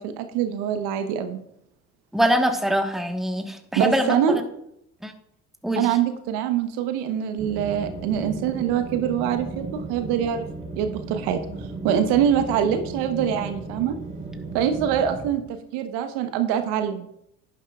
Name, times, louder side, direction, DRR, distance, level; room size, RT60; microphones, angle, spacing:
voice 1, 0.0-1.4 3.7-4.4 5.8-10.5 10.8-14.0 14.5-17.1, right 9 dB, 70° right, 8 dB, 1.1 m, -24 dB
voice 2, 2.1-4.2 5.0-5.1 5.6-5.9, equal, ahead, 5 dB, 1.3 m, -23 dB
sound 1, 7.4-15.3, right 3 dB, 20° right, 4.1 m, -35 dB
11.0 x 9.9 x 2.4 m, 0.74 s
hypercardioid pair, 60°, 41 cm